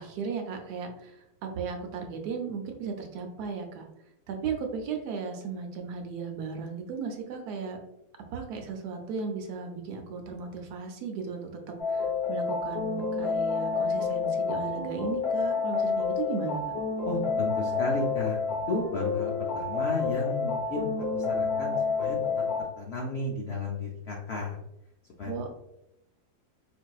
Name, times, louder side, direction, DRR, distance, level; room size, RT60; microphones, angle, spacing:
voice 1, 0.0-3.9 4.3-7.8 8.3-16.6 25.2-25.5, right 5 dB, 75° right, 3 dB, 1.1 m, -36 dB
sound 1, 11.8-22.6, left 5 dB, 50° left, 0.7 m, -29 dB
voice 2, 17.1-18.4 18.7-20.9 21.1-22.2 22.8-24.6 25.2-25.3, left 2 dB, 90° left, -2 dB, 0.5 m, -33 dB
4.1 x 2.6 x 2.3 m, 0.86 s
omnidirectional pair, 1.8 m